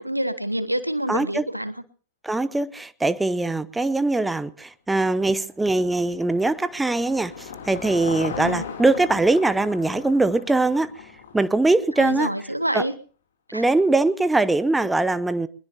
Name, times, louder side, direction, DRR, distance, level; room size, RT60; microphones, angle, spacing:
voice 1, 0.0-1.7 8.4-8.7 12.0-12.9 13.5-13.6, right 1 dB, 90° right, 14 dB, 1.2 m, -27 dB
voice 2, 1.1-1.4 2.2-10.9 11.3-12.3 12.7-12.8 13.5-15.5, right 2 dB, 5° right, 14 dB, 0.9 m, -22 dB
Car passing by / Engine, 5.6-12.1, left 6 dB, 65° left, 2.9 m, -38 dB
24.0 x 20.5 x 2.8 m, 0.38 s
figure-of-eight pair, 90°, 0 cm